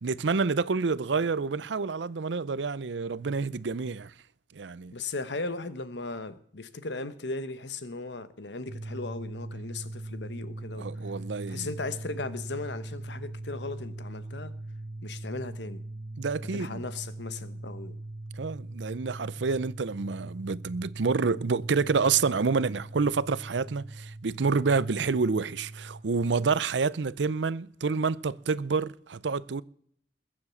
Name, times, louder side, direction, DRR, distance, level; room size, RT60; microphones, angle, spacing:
voice 1, 0.0-4.1 4.5-5.0 10.8-11.7 16.2-16.8 18.4-29.6, right 4 dB, 85° right, 0.6 m, -28 dB
voice 2, 4.9-10.9 11.5-14.5 15.0-15.8 16.5-18.0, left 3 dB, 75° left, 1.2 m, -37 dB
sound 1, 8.7-26.0, right 2 dB, 60° right, 1.4 m, -41 dB
21.0 x 7.4 x 7.1 m
head